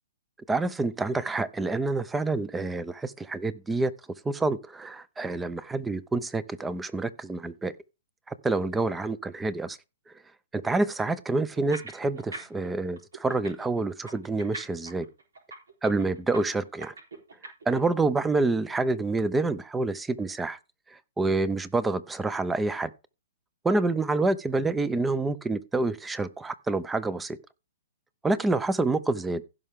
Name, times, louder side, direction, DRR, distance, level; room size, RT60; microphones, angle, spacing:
voice 1, 0.5-3.9 4.2-7.7 8.3-9.8 10.5-15.1 15.8-16.9 17.4-20.6 20.9-22.9 23.6-27.4 28.2-29.4, right 3 dB, 10° right, 0.6 m, -27 dB
sound 1, 11.5-12.7 13.0-17.8, right 3 dB, 90° right, 3.9 m, -41 dB
16.0 x 5.6 x 3.6 m
hypercardioid pair, 145°, 0 cm